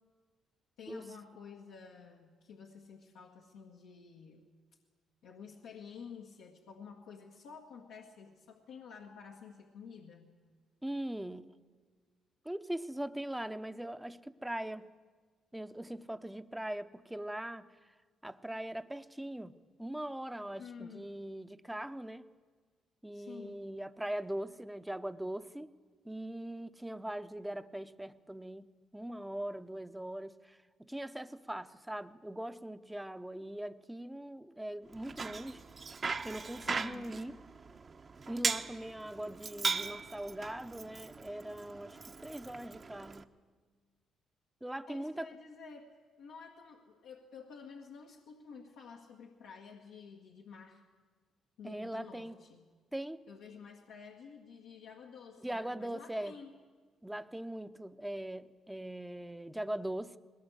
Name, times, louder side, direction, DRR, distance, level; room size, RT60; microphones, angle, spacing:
voice 1, 0.8-4.5 5.2-10.3 20.6-21.1 23.1-23.6 36.6-37.1 44.9-45.9 46.2-50.8 51.6-52.7 53.3-56.5, left 6 dB, 85° left, -2 dB, 1.7 m, -51 dB
voice 2, 10.8-11.5 12.4-14.9 15.5-17.7 18.2-19.5 19.8-22.3 23.0-25.7 26.0-35.6 36.2-37.4 38.3-43.4 44.6-45.3 51.6-52.4 52.9-53.2 55.4-56.4 57.0-60.2, right 1 dB, 5° right, 11 dB, 0.8 m, -41 dB
Bicycle, 34.9-43.2, right 4 dB, 40° right, 1.0 m, -39 dB
21.0 x 18.0 x 8.1 m, 1.5 s
supercardioid pair, 75°, 0 cm